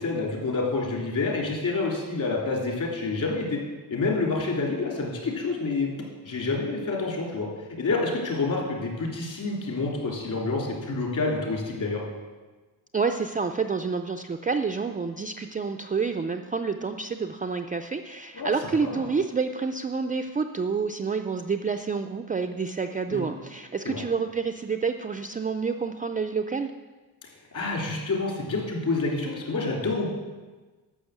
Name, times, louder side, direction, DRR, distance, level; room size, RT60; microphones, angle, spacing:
voice 1, 0.0-3.6 3.9-5.9 6.2-7.5 7.8-12.0 18.3-18.5 18.8-19.0 23.1-23.2 23.8-24.0 27.5-30.1, left 3 dB, 50° left, -1 dB, 3.3 m, -28 dB
voice 2, 12.9-26.7, right 5 dB, 20° right, 6 dB, 0.3 m, -28 dB
12.0 x 6.5 x 8.2 m, 1.3 s
wide cardioid pair, 170°, 40 cm